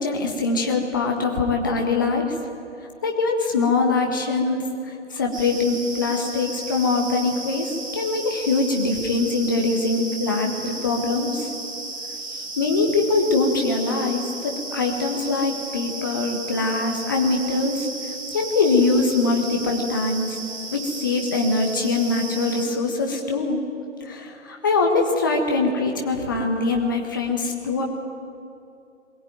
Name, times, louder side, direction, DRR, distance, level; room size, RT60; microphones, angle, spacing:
voice 1, 0.0-2.3 3.0-4.6 5.1-7.7 7.9-11.4 12.6-17.8 18.3-20.3 20.7-23.6 24.1-27.8, left 3 dB, 15° left, 2 dB, 1.4 m, -23 dB
sound 1, 5.3-22.7, right 3 dB, 15° right, 1.5 m, -34 dB
22.0 x 16.0 x 9.3 m, 2.6 s
figure-of-eight pair, 155°, 36 cm